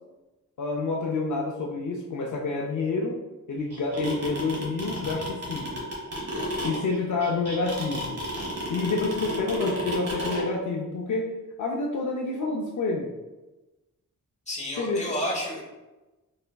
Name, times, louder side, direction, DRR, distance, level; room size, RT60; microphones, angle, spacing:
voice 1, 0.6-5.9 6.6-8.2 8.7-13.1 14.8-15.0, left 3 dB, 65° left, -1 dB, 0.5 m, -28 dB
sound 1, 3.7-10.4, equal, 45° right, 1.3 m, -32 dB
voice 2, 14.5-15.6, left 1 dB, 20° left, -3 dB, 0.9 m, -30 dB
4.2 x 3.3 x 2.2 m, 1.1 s
wide cardioid pair, 110°, 33 cm